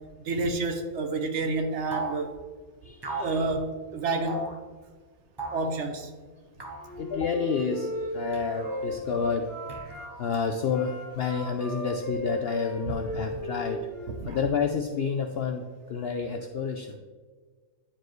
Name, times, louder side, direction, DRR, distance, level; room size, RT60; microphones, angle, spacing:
voice 1, 0.2-2.3 3.2-4.4 5.5-6.1 14.2-14.4, right 3 dB, 60° right, 6 dB, 0.9 m, -29 dB
sound 1, 1.9-2.2 3.0-3.4 4.3-4.6 5.4-5.7 6.6-6.9 8.3-8.8 9.7-10.4, right 2 dB, 30° right, 0.5 m, -36 dB
voice 2, 2.8-3.5 6.3-6.4 7.0-9.5 10.2-13.9 14.2-15.6 15.9-17.0, left 5 dB, 70° left, 4 dB, 0.6 m, -29 dB
Wind instrument woodwind instrument, 6.8-10.1 10.6-14.2, equal, 80° right, 3.0 m, -36 dB
10.5 x 4.6 x 3.1 m, 1.5 s
omnidirectional pair, 1.5 m